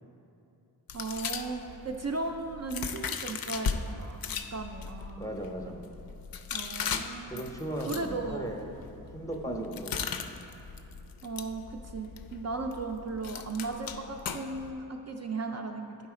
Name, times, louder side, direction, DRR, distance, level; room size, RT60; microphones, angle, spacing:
sound 1, 0.9-3.8 4.2-14.7, left 6 dB, 65° left, 0.5 m, -38 dB
voice 1, 0.9-4.2 4.5-5.4 6.5-7.5 7.8-8.5 9.5-9.8 11.2-16.0, right 3 dB, 45° right, 2 dB, 0.4 m, -36 dB
voice 2, 5.2-5.8 7.3-8.7 9.1-10.3, right 1 dB, 10° left, 1 dB, 0.6 m, -37 dB
10.0 x 4.1 x 4.8 m, 2.8 s
wide cardioid pair, 105°, 38 cm